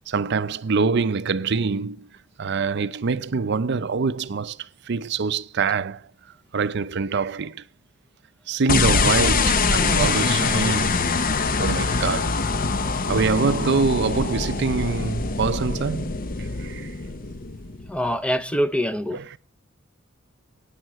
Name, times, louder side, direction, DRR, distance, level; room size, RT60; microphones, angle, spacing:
voice 1, 0.1-2.1 2.4-6.0 6.5-7.6 8.5-11.1 11.6-12.4 13.1-16.1 16.4-16.9 19.1-19.4, right 4 dB, 55° right, 0.5 m, -25 dB
sound 1, 8.7-18.1, left 4 dB, 45° left, 0.8 m, -24 dB
voice 2, 17.9-19.4, equal, 5° left, 0.6 m, -25 dB
15.5 x 9.9 x 3.0 m
head